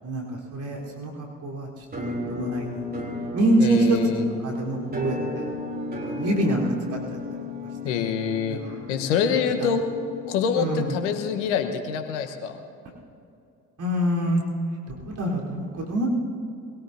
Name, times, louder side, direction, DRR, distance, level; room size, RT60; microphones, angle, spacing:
voice 1, 0.0-3.1 3.3-4.2 4.4-5.5 6.1-7.2 8.5-8.9 9.3-9.7 10.6-11.0 13.8-14.4 14.9-16.1, right 1 dB, 55° right, -3 dB, 4.0 m, -26 dB
Musical instrument, 1.9-11.7, left 2 dB, 25° right, 3.2 m, -35 dB
voice 2, 3.6-4.3 7.8-8.6 8.9-9.8 10.3-12.6, left 7 dB, 85° left, 6 dB, 1.2 m, -25 dB
23.0 x 17.5 x 2.7 m, 2.6 s
hypercardioid pair, 50°, 35 cm